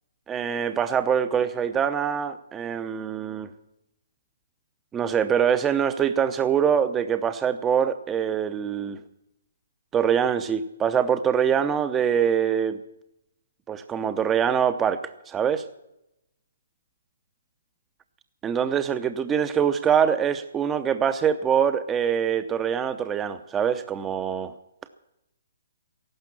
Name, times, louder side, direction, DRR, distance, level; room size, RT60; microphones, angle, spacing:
voice 1, 0.3-3.5 4.9-9.0 9.9-12.8 13.7-15.6 18.4-24.5, right 8 dB, 15° right, 10 dB, 0.8 m, -24 dB
15.5 x 12.0 x 7.4 m, 0.84 s
figure-of-eight pair, 130°, 0 cm